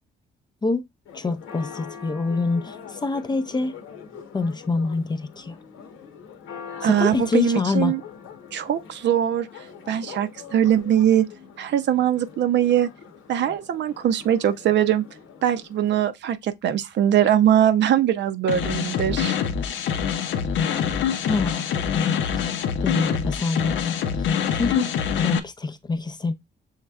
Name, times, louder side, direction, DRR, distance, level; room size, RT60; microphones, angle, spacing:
Church bell, 1.0-16.0, left 7 dB, 85° left, 1.0 m, -43 dB
voice 1, 1.1-2.8 3.0-3.7 4.3-5.6 6.8-8.0 21.3-21.6 22.8-24.0 24.5-26.3, left 3 dB, 20° left, 0.5 m, -25 dB
voice 2, 6.8-8.0 8.5-9.5 9.9-11.3 11.6-12.9 13.3-15.0 15.4-19.4, right 10 dB, 65° right, 0.6 m, -21 dB
sound 1, 18.5-25.4, left 7 dB, 70° left, 0.6 m, -25 dB
6.4 x 3.2 x 2.3 m
cardioid pair, 90°, 20 cm